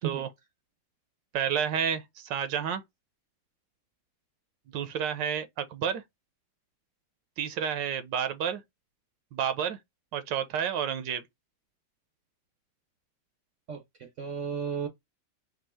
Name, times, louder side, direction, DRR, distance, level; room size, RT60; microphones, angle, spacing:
voice 1, 1.3-2.8 4.7-6.0 7.4-8.6 9.3-9.8 10.1-11.2, right 8 dB, 85° right, 1.4 m, -30 dB
voice 2, 13.7-14.9, right 7 dB, 60° right, 0.8 m, -34 dB
4.4 x 2.7 x 4.2 m
omnidirectional pair, 1.9 m